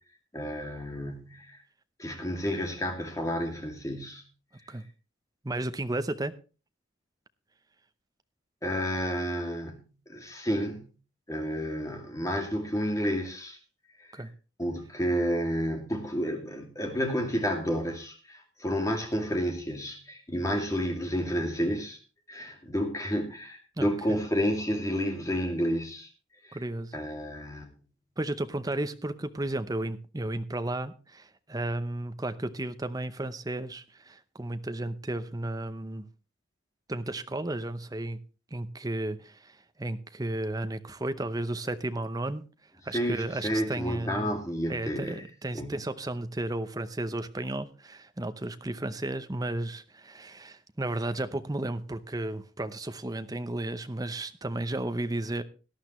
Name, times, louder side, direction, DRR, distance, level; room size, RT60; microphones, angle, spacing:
voice 1, 0.3-1.6 2.0-4.2 8.6-10.9 11.3-13.6 14.0-14.1 14.6-22.0 22.3-26.1 26.4-26.6 26.9-27.7 42.9-45.2 45.5-45.8, equal, 15° left, 2.4 m, -30 dB
voice 2, 5.4-6.3 14.1-14.3 23.8-23.9 26.5-26.9 28.2-36.0 36.9-38.2 38.5-42.4 42.8-44.3 44.7-55.4, right 1 dB, 20° right, 0.7 m, -33 dB
18.0 x 11.5 x 3.1 m
head